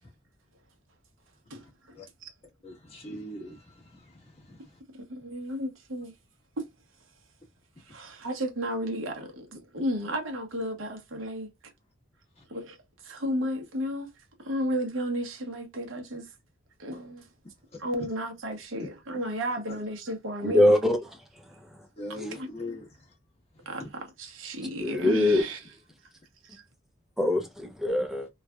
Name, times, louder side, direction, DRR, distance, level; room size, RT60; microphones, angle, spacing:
voice 1, 1.5-2.0 2.2-2.3 5.1-6.1 6.6-6.7 7.8-11.5 12.5-12.8 13.0-14.1 14.4-16.3 16.8-17.3 17.8-20.7 22.3-22.5 23.6-23.8 24.2-25.6 26.5-26.6, equal, 90° right, 1.0 m, -33 dB
voice 2, 2.6-4.8 7.8-8.0 12.3-12.4 17.7-17.8 18.8-18.9 19.7-19.8 22.0-23.2 23.5-23.9, left 1 dB, 30° left, 1.3 m, -42 dB
voice 3, 20.4-21.0 24.8-25.4 27.2-28.3, left 1 dB, ahead, 0.6 m, -23 dB
3.2 x 2.3 x 2.3 m
head